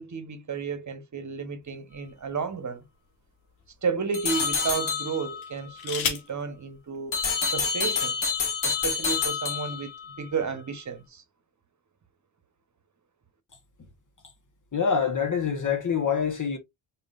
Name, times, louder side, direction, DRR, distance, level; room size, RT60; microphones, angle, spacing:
voice 1, 0.0-2.8 3.8-7.2 7.5-8.2 8.6-9.9 10.2-11.2, right 5 dB, 40° right, 1.1 m, -32 dB
sound 1, 1.6-2.8 3.6-3.7 5.4-6.4 7.6-7.7 8.0-8.4, left 7 dB, 85° left, 1.2 m, -34 dB
sound 2, 4.1-5.5 7.1-10.1, left 5 dB, 70° left, 2.0 m, -28 dB
voice 2, 14.7-16.6, left 6 dB, 40° left, 1.3 m, -25 dB
4.1 x 3.7 x 2.5 m
supercardioid pair, 60°, 47 cm